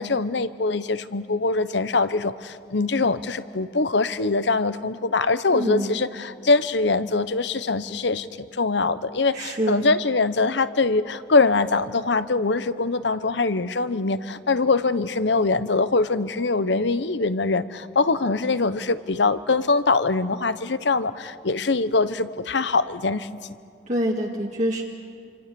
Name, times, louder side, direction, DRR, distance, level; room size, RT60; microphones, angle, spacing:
voice 1, 0.0-23.5, left 3 dB, 75° left, 14 dB, 0.9 m, -23 dB
voice 2, 5.5-6.0 9.3-9.8 23.9-24.8, equal, 40° right, -1 dB, 2.0 m, -26 dB
28.0 x 26.0 x 6.9 m, 2.3 s
head